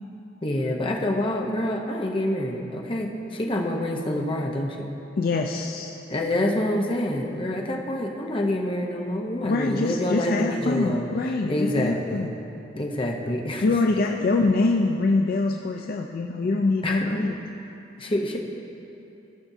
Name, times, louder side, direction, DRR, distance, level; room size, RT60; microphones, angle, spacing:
voice 1, 0.4-4.9 6.1-11.1 11.5-12.3 12.7-13.6 16.8-17.3 18.0-18.4, left 1 dB, 30° left, 0 dB, 0.8 m, -27 dB
voice 2, 5.2-5.9 9.4-12.3 13.6-17.4, left 3 dB, 55° left, 2 dB, 0.4 m, -24 dB
16.5 x 6.0 x 2.7 m, 2.8 s
head